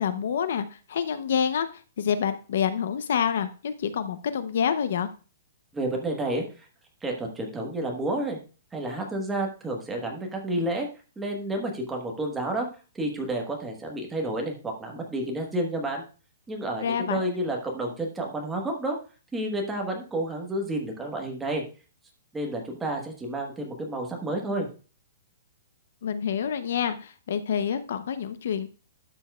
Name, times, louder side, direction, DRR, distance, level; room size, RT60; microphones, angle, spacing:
voice 1, 0.0-5.1 16.8-17.2 26.0-28.7, left 8 dB, 55° left, 12 dB, 0.6 m, -27 dB
voice 2, 5.7-6.4 7.0-8.4 8.7-10.9 11.2-12.7 12.9-16.0 16.5-19.0 19.3-21.6 22.3-24.7, right 1 dB, 5° right, 1 dB, 1.2 m, -30 dB
12.5 x 7.1 x 2.3 m, 0.35 s
hypercardioid pair, 180°, 0 cm